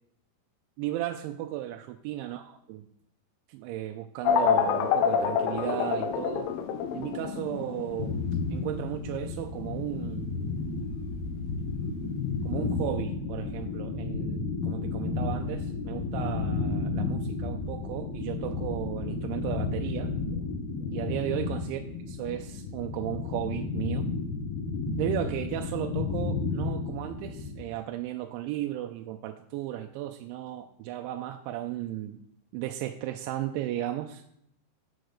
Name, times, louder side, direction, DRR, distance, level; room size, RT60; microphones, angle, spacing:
voice 1, 0.8-2.4 3.5-6.5 6.9-8.2 8.5-10.7 12.4-20.1 20.9-21.8 22.1-24.1 25.0-32.2 32.5-34.2, right 13 dB, 85° right, 5 dB, 2.8 m, -35 dB
sound 1, 4.2-12.7, left 7 dB, 90° left, 3.2 m, -29 dB
sound 2, 8.0-27.6, left 4 dB, 65° left, 2.9 m, -32 dB
7.0 x 6.2 x 6.5 m, 0.71 s
omnidirectional pair, 5.5 m